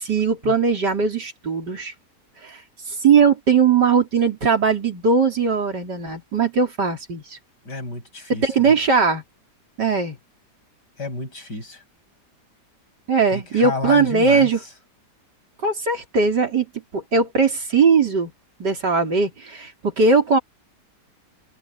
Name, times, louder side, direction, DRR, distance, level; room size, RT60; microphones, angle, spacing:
voice 1, 0.0-1.9 2.4-2.6 3.0-7.2 8.4-9.2 9.8-10.2 13.1-14.6 15.6-16.7 16.9-18.3 18.6-20.4, right 5 dB, 85° right, 4.6 m, -19 dB
voice 2, 7.6-8.7 11.0-11.8 13.3-14.7, left 2 dB, 90° left, 7.9 m, -31 dB
omnidirectional pair, 1.8 m